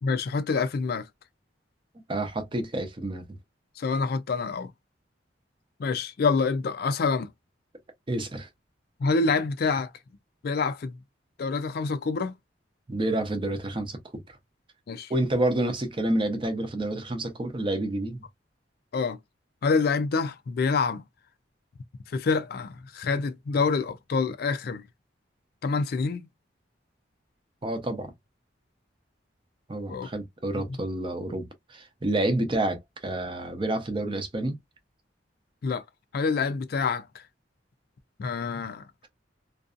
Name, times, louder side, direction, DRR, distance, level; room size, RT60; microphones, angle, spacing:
voice 1, 0.0-1.1 3.8-4.7 5.8-7.3 9.0-9.9 10.4-10.9 11.4-12.4 14.9-15.1 18.9-19.2 19.6-21.0 22.1-24.8 25.6-26.3 29.9-30.1 35.6-35.8 36.1-37.2 38.2-38.8, left 4 dB, 55° left, 0.4 m, -27 dB
voice 2, 2.1-3.2 8.1-8.5 12.9-14.4 15.1-18.2 27.6-28.1 29.7-34.6, right 1 dB, 25° right, 0.6 m, -29 dB
2.6 x 2.3 x 2.4 m
head